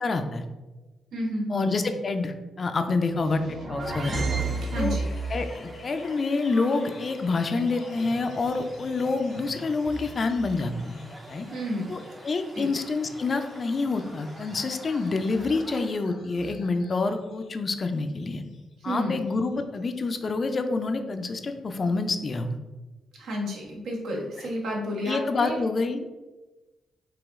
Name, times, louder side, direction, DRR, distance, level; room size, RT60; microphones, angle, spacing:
voice 1, 0.0-0.4 1.5-4.2 4.8-5.0 5.3-11.0 11.3-11.5 11.9-18.4 18.8-22.6 25.0-26.2, left 3 dB, 40° left, 7 dB, 0.4 m, -27 dB
voice 2, 1.1-1.8 4.7-5.1 11.5-12.1 12.5-12.7 18.8-19.2 23.2-25.6, equal, 85° right, -1 dB, 1.1 m, -31 dB
sound 1, 3.2-20.1, left 2 dB, 70° left, 0.7 m, -49 dB
sound 2, 3.2-5.5, right 3 dB, 60° right, 1.0 m, -30 dB
sound 3, 3.8-15.9, right 1 dB, 20° right, 0.5 m, -47 dB
5.0 x 2.9 x 3.5 m, 1.1 s
cardioid pair, 115°, 0 cm